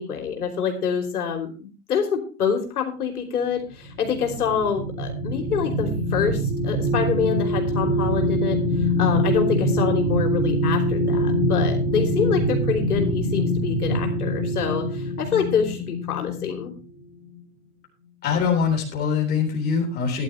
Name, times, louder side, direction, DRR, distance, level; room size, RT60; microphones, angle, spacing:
voice 1, 0.0-16.7, left 7 dB, 85° left, 3 dB, 3.3 m, -26 dB
sound 1, 3.8-16.8 17.2-17.4, equal, 20° right, 2.2 m, -24 dB
voice 2, 18.2-20.2, left 6 dB, 20° left, -1 dB, 3.8 m, -23 dB
13.0 x 11.0 x 3.2 m, 0.35 s
hypercardioid pair, 150°, 44 cm